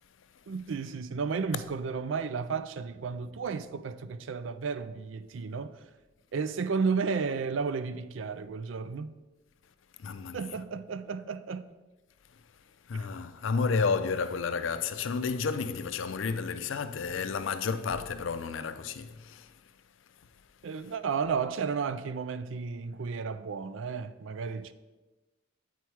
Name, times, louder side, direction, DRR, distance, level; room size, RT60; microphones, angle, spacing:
voice 1, 0.5-5.7 6.3-9.1 10.3-11.6 12.9-13.1 20.6-24.7, right 5 dB, 75° right, 0.4 m, -33 dB
voice 2, 10.0-10.4 12.9-19.5, left 5 dB, 75° left, 0.5 m, -31 dB
8.4 x 4.5 x 4.6 m
head